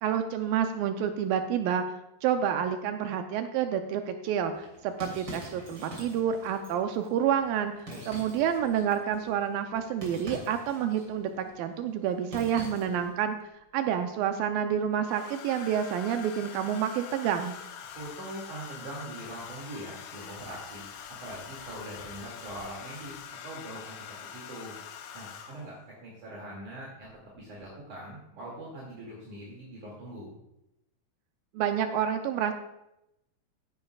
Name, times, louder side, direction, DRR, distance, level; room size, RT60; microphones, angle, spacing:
voice 1, 0.0-2.0 2.2-13.4 13.7-17.5 31.5-32.5, right 9 dB, 85° right, 6 dB, 2.1 m, -29 dB
sound 1, 4.5-13.2, right 1 dB, 30° right, 3.5 m, -46 dB
Domestic sounds home sounds, 13.0-13.6 15.0-25.8 27.0-27.3 27.6-27.9, left 8 dB, 75° left, 2.0 m, -44 dB
voice 2, 17.9-20.8 21.1-24.8 25.1-25.8 26.0-30.3, right 1 dB, 55° right, -5 dB, 3.5 m, -42 dB
16.0 x 10.0 x 2.3 m, 0.85 s
omnidirectional pair, 4.7 m